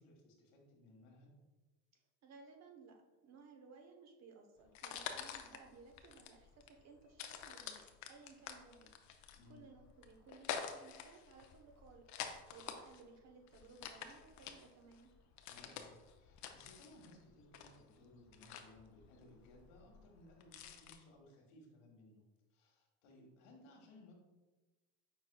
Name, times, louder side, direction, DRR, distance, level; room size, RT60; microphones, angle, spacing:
voice 1, 0.0-1.3 9.4-9.6 15.5-22.2 22.5-24.1, left 1 dB, 80° left, 0 dB, 1.3 m, -61 dB
voice 2, 1.9-8.9 9.5-12.1 12.5-15.1, right 4 dB, 45° right, 3 dB, 0.9 m, -60 dB
sound 1, 4.6-21.0, left 8 dB, 50° left, 0.6 m, -49 dB
5.8 x 4.1 x 2.2 m, 1.2 s
supercardioid pair, 95°, 36 cm